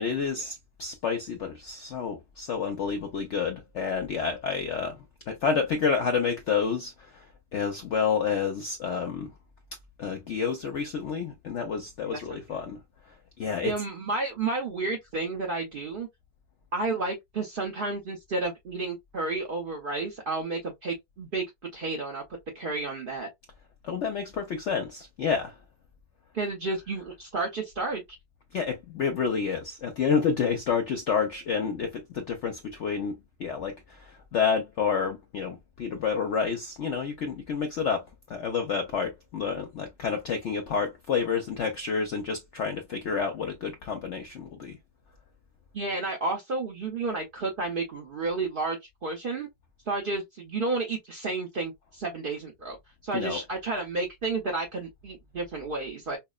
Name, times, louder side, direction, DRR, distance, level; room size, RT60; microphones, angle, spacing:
voice 1, 0.0-7.3 7.5-9.3 10.0-12.8 13.4-13.7 23.8-25.6 28.5-44.8 53.1-53.4, left 6 dB, 80° left, 0.6 m, -29 dB
voice 2, 12.0-12.6 13.6-16.1 16.7-21.4 21.7-22.2 22.5-23.3 26.3-28.0 45.7-49.5 49.9-52.8 53.0-56.2, right 3 dB, 50° right, 0.6 m, -31 dB
5.5 x 2.0 x 2.3 m
omnidirectional pair, 1.9 m